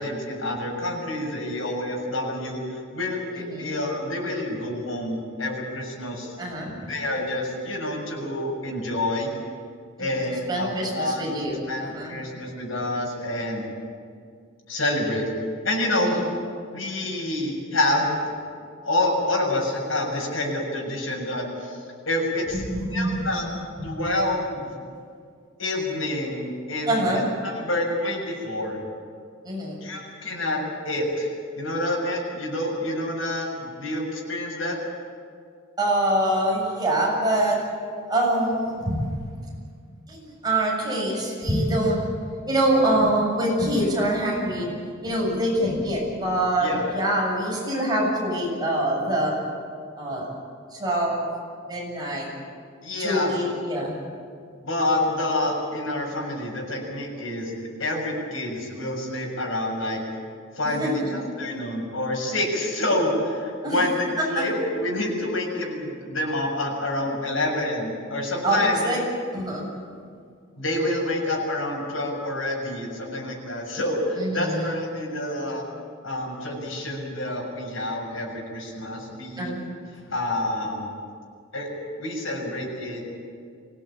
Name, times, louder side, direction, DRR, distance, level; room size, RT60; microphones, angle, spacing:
voice 1, 0.0-6.3 6.9-9.3 10.0-11.3 11.7-13.6 14.7-15.3 15.6-16.2 16.7-18.3 18.8-21.8 22.1-22.6 22.9-23.5 23.8-24.8 25.6-27.1 27.4-28.8 29.8-31.3 31.6-34.8 46.6-46.8 52.8-53.3 54.6-60.0 60.6-68.8 70.6-75.6 76.0-79.5 79.9-80.9 81.5-81.7 82.0-83.0, left 1 dB, 90° left, -1 dB, 7.1 m, -28 dB
voice 2, 3.3-3.7 6.4-6.9 10.0-10.2 10.5-12.1 16.0-16.2 22.6-23.2 23.8-23.9 26.9-27.3 29.5-29.8 35.8-37.6 38.1-39.1 40.1-42.0 42.5-44.7 45.0-49.4 50.0-50.3 50.7-51.2 51.6-52.3 53.0-53.9 60.6-61.1 63.6-63.8 64.2-64.4 68.4-69.0 69.3-69.7 74.2-74.8 79.4-79.6, right 1 dB, 20° right, -3 dB, 7.4 m, -25 dB
24.5 x 17.5 x 8.8 m, 2.1 s
head